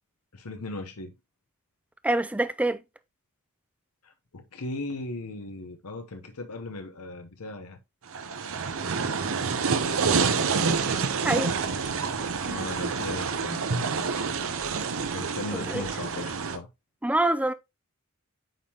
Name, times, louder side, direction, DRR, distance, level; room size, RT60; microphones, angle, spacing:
voice 1, 0.3-1.1 4.0-7.8 10.1-10.4 12.4-14.3 15.1-16.7, left 2 dB, 80° left, 0.9 m, -38 dB
voice 2, 2.0-2.8 11.2-11.5 15.5-15.8 17.0-17.5, right 2 dB, 5° right, 0.4 m, -25 dB
sound 1, 8.1-16.6, right 5 dB, 65° right, 0.8 m, -28 dB
9.1 x 3.6 x 2.8 m
head